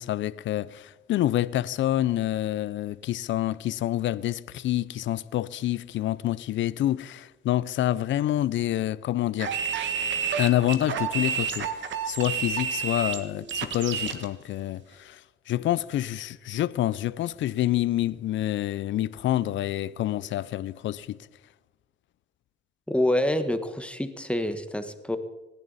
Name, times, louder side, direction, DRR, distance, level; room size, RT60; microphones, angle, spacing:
voice 1, 0.0-9.5 10.4-11.7 12.1-15.2 15.5-21.2, left 13 dB, 70° left, 0.6 m, -27 dB
sound 1, 9.4-14.2, right 7 dB, 65° right, 1.6 m, -30 dB
voice 2, 22.9-25.2, left 1 dB, 5° left, 1.4 m, -27 dB
26.0 x 11.0 x 4.1 m
cardioid pair, 90°, 20 cm